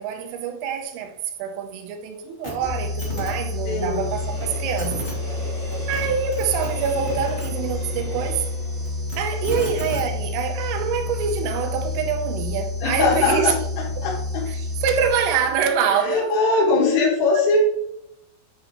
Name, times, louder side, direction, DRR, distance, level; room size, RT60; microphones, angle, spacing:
voice 1, 0.0-5.1 5.9-8.5 9.2-13.6 14.0-14.1 14.5-16.3 16.9-17.0 17.4-17.5, right 7 dB, 80° right, 3.3 m, -25 dB
Train, 1.8-10.9 11.3-11.4, right 1 dB, 5° right, 1.8 m, -40 dB
sound 1, 2.4-2.5 2.8-3.3 4.4-4.5 4.8-5.1 5.7-6.1 6.3-7.5 8.8-10.0 11.0-11.1, left 1 dB, 40° left, 0.9 m, -34 dB
sound 2, 2.6-15.7, left 2 dB, 65° right, 1.7 m, -29 dB
voice 2, 3.7-4.1 12.8-13.5 14.0-14.4 16.0-17.6, left 4 dB, 75° left, 4.2 m, -21 dB
10.0 x 5.4 x 3.0 m
omnidirectional pair, 5.9 m